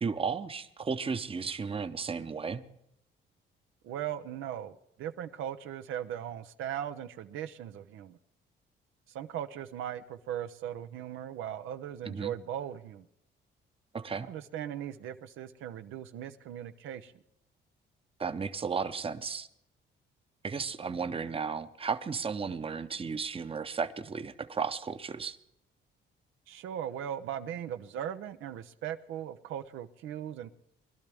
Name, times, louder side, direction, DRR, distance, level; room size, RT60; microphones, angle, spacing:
voice 1, 0.0-2.7 12.1-12.3 13.9-14.3 18.2-19.5 20.4-25.4, right 5 dB, 30° right, 11 dB, 0.8 m, -34 dB
voice 2, 3.8-8.2 9.1-13.1 14.3-17.1 26.5-30.5, right 10 dB, 85° right, 9 dB, 0.7 m, -38 dB
21.5 x 12.0 x 3.5 m, 0.79 s
cardioid pair, 90°, 20 cm